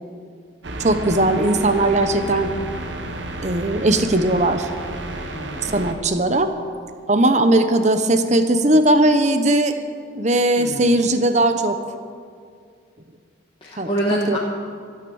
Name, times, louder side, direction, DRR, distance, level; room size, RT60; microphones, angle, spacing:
sound 1, 0.6-5.9, right 2 dB, 70° right, 1.2 m, -31 dB
voice 1, 0.8-2.5 3.4-4.7 5.6-6.5 7.1-9.7 10.1-11.8 13.8-13.9 14.3-14.4, right 1 dB, 35° right, 8 dB, 0.9 m, -18 dB
voice 2, 5.3-5.7 10.6-10.9 13.6-14.4, right 1 dB, 25° left, -4 dB, 1.4 m, -26 dB
14.5 x 9.6 x 7.1 m, 2.2 s
head